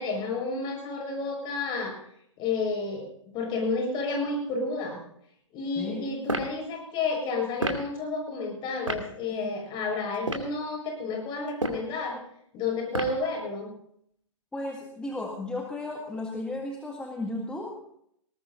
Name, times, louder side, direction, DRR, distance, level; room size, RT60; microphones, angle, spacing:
voice 1, 0.0-2.0 2.4-3.1 3.3-5.0 5.5-12.2 12.5-13.8, left 3 dB, 30° left, 2 dB, 7.1 m, -31 dB
sound 1, 6.2-6.5 7.6-7.9 8.9-9.1 10.1-10.5 11.5-11.9 12.9-13.3, right 2 dB, 90° right, 2.6 m, -30 dB
voice 2, 14.5-17.8, left 2 dB, 5° left, 0 dB, 1.9 m, -34 dB
21.0 x 19.0 x 2.7 m, 0.70 s
figure-of-eight pair, 120°, 16 cm